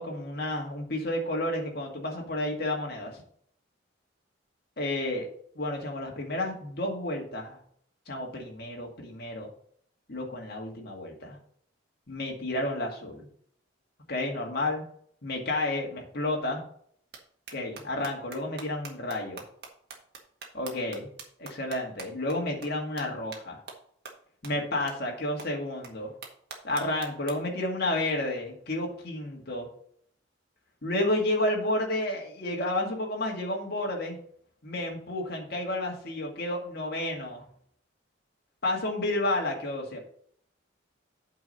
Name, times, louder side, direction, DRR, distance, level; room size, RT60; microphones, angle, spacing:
voice 1, 0.0-3.2 4.8-5.3 5.6-7.6 8.1-9.5 10.1-11.4 12.1-13.3 14.1-14.8 15.2-16.6 17.5-19.4 20.5-21.1 21.4-23.6 24.4-26.1 26.6-29.7 30.8-34.2 34.6-37.5 38.6-40.0, left 1 dB, 55° left, 0 dB, 2.1 m, -31 dB
sound 1, 17.1-17.2 17.5-22.4 22.6-22.7 23.0-23.1 23.3-23.4 23.7-23.8 24.1-24.2 24.4-24.5 24.9-25.0 25.4-25.5 25.8-25.9 26.2-27.3, right 5 dB, 55° right, 1.7 m, -42 dB
8.8 x 4.8 x 5.6 m, 0.62 s
head